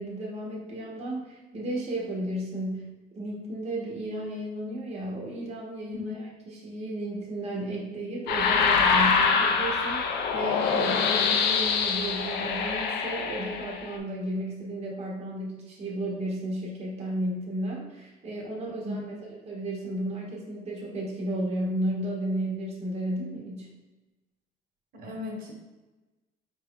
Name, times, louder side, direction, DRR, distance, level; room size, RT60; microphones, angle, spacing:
voice 1, 0.0-2.9 3.2-23.7, right 1 dB, 40° right, -4 dB, 1.0 m, -33 dB
sound 1, 8.3-13.9, left 5 dB, 80° left, 0.5 m, -25 dB
voice 2, 24.9-25.5, left 2 dB, 60° right, -1 dB, 1.1 m, -37 dB
4.4 x 2.3 x 3.6 m, 1.1 s
cardioid pair, 110°, 17 cm